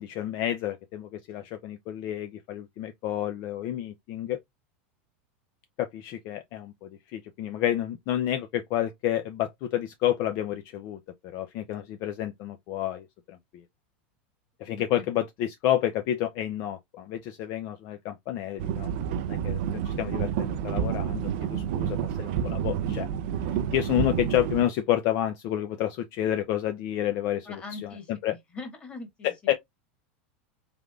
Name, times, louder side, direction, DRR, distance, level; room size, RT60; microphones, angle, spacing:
voice 1, 0.0-4.4 5.8-11.0 11.3-13.4 14.6-18.9 19.3-19.6 19.8-23.1 23.4-28.4 29.2-29.5, left 12 dB, 50° left, 0.5 m, -30 dB
voice 2, 14.7-15.1 27.4-29.3, left 3 dB, 20° left, 1.5 m, -42 dB
sound 1, 18.6-24.6, right 9 dB, 65° right, 0.4 m, -29 dB
3.6 x 3.4 x 2.3 m
supercardioid pair, 135°, 6 cm